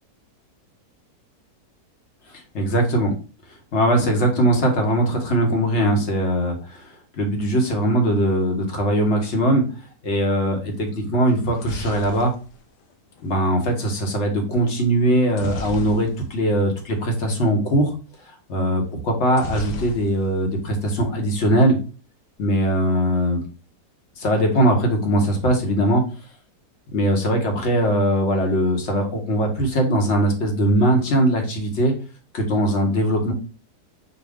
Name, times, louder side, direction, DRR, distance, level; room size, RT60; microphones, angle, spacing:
voice 1, 2.5-3.1 3.7-9.6 10.0-12.3 13.2-17.9 18.3-21.8 22.4-23.4 24.2-26.0 26.9-31.9 32.3-33.3, right 1 dB, 45° left, 2 dB, 1.2 m, -20 dB
sound 1, 11.3-13.4 15.3-16.5 16.8-16.9 17.2-17.4 19.3-20.5 20.8-21.4, left 2 dB, 90° left, 1.3 m, -34 dB
6.2 x 2.3 x 3.5 m, 0.37 s
omnidirectional pair, 1.8 m